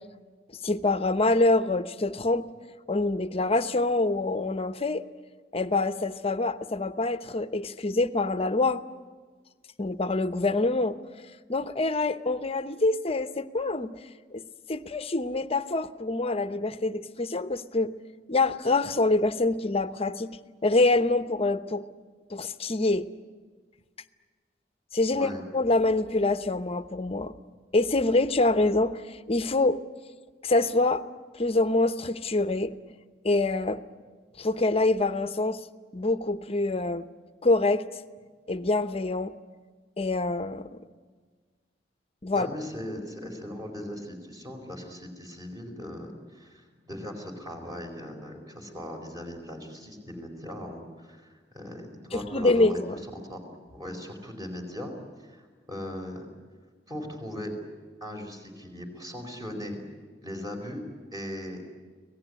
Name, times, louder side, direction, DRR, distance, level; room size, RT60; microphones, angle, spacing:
voice 1, 0.6-2.4 2.9-5.0 5.5-8.8 9.8-11.0 11.5-13.9 14.3-14.4 14.7-17.9 18.3-20.3 20.6-21.8 22.3-23.1 24.9-27.3 27.7-29.8 30.4-31.0 31.4-32.7 33.2-33.8 34.4-35.6 35.9-37.0 37.4-37.8 38.5-39.3 40.0-40.7 42.2-42.5 52.1-53.0, left 2 dB, 35° left, 12 dB, 0.9 m, -25 dB
voice 2, 25.1-25.4 42.3-53.4 53.7-54.9 55.2-56.3 56.9-57.6 58.0-59.8 60.2-61.6, left 1 dB, 20° right, 3 dB, 4.5 m, -39 dB
25.0 x 18.0 x 9.7 m, 1.5 s
head